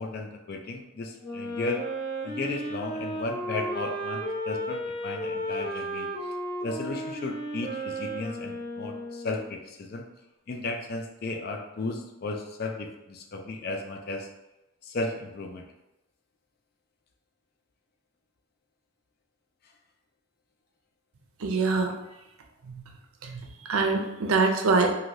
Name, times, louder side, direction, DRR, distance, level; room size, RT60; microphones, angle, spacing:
voice 1, 0.0-1.8 2.2-6.1 6.6-10.1 10.5-14.3 14.8-15.7, left 2 dB, 45° left, 3 dB, 0.4 m, -34 dB
Wind instrument woodwind instrument, 1.2-9.6, equal, 75° left, 1.1 m, -34 dB
voice 2, 21.4-21.9 22.6-22.8 23.2-24.9, right 3 dB, 85° right, 3 dB, 0.5 m, -25 dB
3.1 x 2.6 x 2.6 m, 0.96 s
head